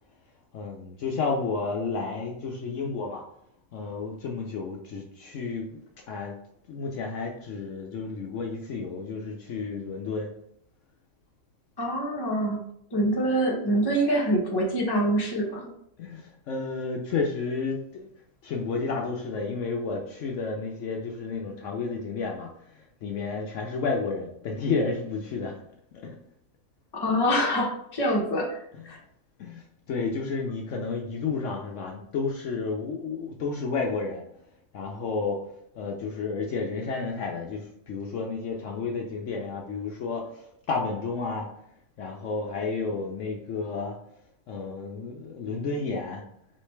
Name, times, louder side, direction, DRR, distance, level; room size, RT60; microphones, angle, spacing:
voice 1, 0.5-3.2 3.7-5.8 6.1-6.4 6.7-10.3 16.0-18.1 18.4-25.6 25.9-26.2 28.8-29.0 29.4-34.2 34.7-35.4 35.8-41.5 42.0-44.0 44.5-46.2, left 4 dB, 70° left, 0 dB, 0.8 m, -31 dB
voice 2, 11.8-12.6 12.9-15.7 26.9-28.6 28.9-29.0, equal, 25° left, -1 dB, 0.6 m, -25 dB
3.8 x 3.2 x 3.1 m, 0.72 s
omnidirectional pair, 1.5 m